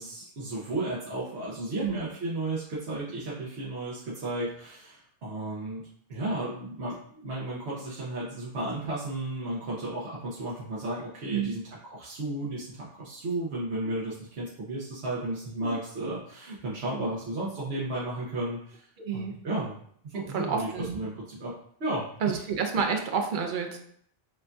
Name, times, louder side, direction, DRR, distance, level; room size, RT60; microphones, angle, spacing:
voice 1, 0.0-5.8 6.1-18.8 19.1-19.8 20.0-21.5 21.8-22.5, right 2 dB, 85° right, -7 dB, 1.1 m, -34 dB
voice 2, 19.0-19.4 20.1-21.0 22.2-23.8, right 6 dB, 55° right, 4 dB, 0.7 m, -29 dB
6.4 x 2.6 x 2.3 m, 0.64 s
omnidirectional pair, 1.1 m